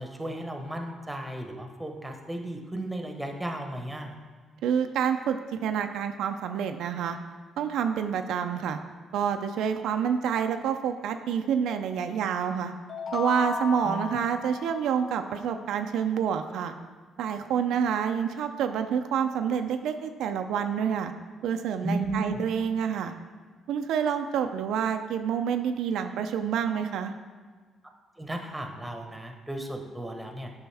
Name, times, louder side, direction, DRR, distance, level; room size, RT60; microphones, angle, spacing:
voice 1, 0.0-4.1 13.8-14.2 21.8-22.4 28.2-30.5, right 1 dB, 10° right, 4 dB, 1.0 m, -35 dB
voice 2, 4.6-7.2 7.6-8.8 9.1-12.7 13.1-16.7 17.2-21.1 21.4-23.1 23.7-27.1, right 7 dB, 80° right, 6 dB, 0.4 m, -28 dB
sound 1, 12.9-15.7, left 6 dB, 50° left, 0.4 m, -36 dB
7.9 x 5.2 x 3.4 m, 1.5 s
cardioid pair, 75°, 0 cm